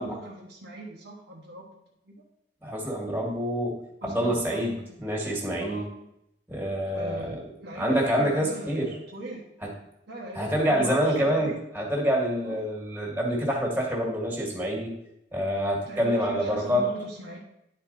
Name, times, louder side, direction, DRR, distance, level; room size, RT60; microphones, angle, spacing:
voice 1, 0.0-1.7 2.1-2.2 4.0-5.0 5.6-5.9 6.9-9.5 10.1-11.6 12.5-12.6 15.9-17.4, right 2 dB, 75° right, -4 dB, 1.3 m, -40 dB
voice 2, 2.6-5.8 6.5-9.0 9.6-9.7 10.3-15.0 15.3-16.9, equal, 10° right, -2 dB, 1.9 m, -27 dB
10.5 x 4.3 x 4.2 m, 0.81 s
head